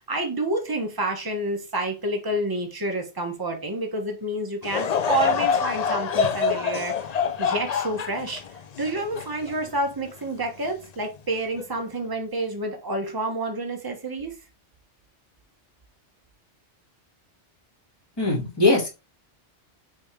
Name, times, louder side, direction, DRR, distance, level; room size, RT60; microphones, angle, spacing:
voice 1, 0.1-7.1 7.4-14.4, right 2 dB, 20° right, 1.4 m, -29 dB
Laughter / Crowd, 4.6-10.1 10.6-10.7 11.6-11.8, left 6 dB, 55° left, 0.5 m, -26 dB
voice 2, 18.2-18.9, left 2 dB, 20° left, 2.7 m, -21 dB
6.3 x 3.7 x 4.7 m
omnidirectional pair, 1.2 m